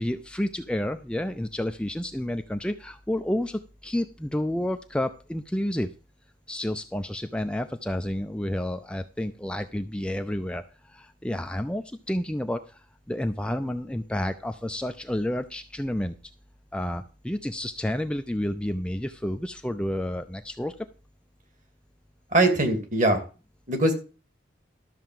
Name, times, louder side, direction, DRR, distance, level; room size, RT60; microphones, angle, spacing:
voice 1, 0.0-5.9 6.5-16.2 16.7-20.7, left 1 dB, 5° left, 7 dB, 0.5 m, -30 dB
voice 2, 22.3-23.2 23.7-23.9, right 2 dB, 40° right, 7 dB, 2.5 m, -21 dB
12.5 x 4.4 x 7.7 m, 0.34 s
head